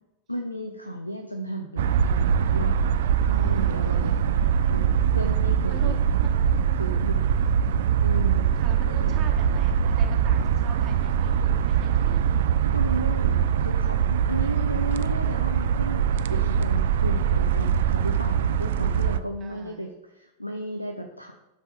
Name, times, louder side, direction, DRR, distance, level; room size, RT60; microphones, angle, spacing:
voice 1, 0.3-2.7 3.2-6.0 6.8-7.3 8.0-8.4 8.8-9.1 12.7-19.9 20.1-21.3, equal, 90° left, 5 dB, 0.6 m, -34 dB
sound 1, 1.8-19.2, right 8 dB, 60° right, 0.4 m, -22 dB
voice 2, 3.3-4.2 5.7-6.3 7.4-7.9 8.5-12.3 19.4-19.9, right 6 dB, 30° right, 2 dB, 1.1 m, -43 dB
12.0 x 4.2 x 3.6 m, 0.96 s
figure-of-eight pair, 90°, 0 cm